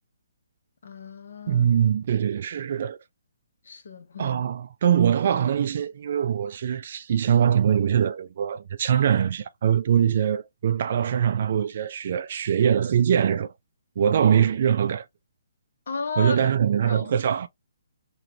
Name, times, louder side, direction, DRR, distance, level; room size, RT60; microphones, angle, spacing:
voice 1, 0.8-1.6 3.6-4.4 15.9-16.4 16.8-17.1, left 4 dB, 55° left, 0.8 m, -34 dB
voice 2, 1.5-3.0 4.2-13.5 14.0-15.1 16.2-17.5, right 8 dB, 40° right, 0.3 m, -22 dB
3.0 x 2.8 x 2.7 m
hypercardioid pair, 170°, 0 cm